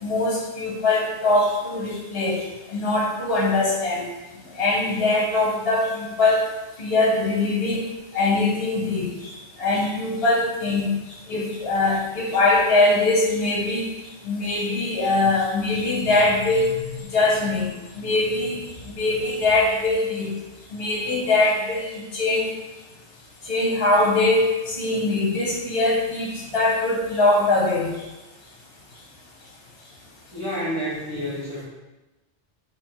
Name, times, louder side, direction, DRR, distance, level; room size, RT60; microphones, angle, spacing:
voice 1, 0.0-2.4 2.7-4.1 4.6-6.4 6.8-7.9 8.1-9.3 9.6-10.9 11.3-13.9 14.2-16.7 17.1-20.3 20.7-22.5 23.5-27.9, left 2 dB, 65° left, -3 dB, 1.3 m, -22 dB
voice 2, 30.3-31.7, equal, 20° right, -13 dB, 1.5 m, -29 dB
3.4 x 3.3 x 4.5 m, 1.1 s
omnidirectional pair, 1.1 m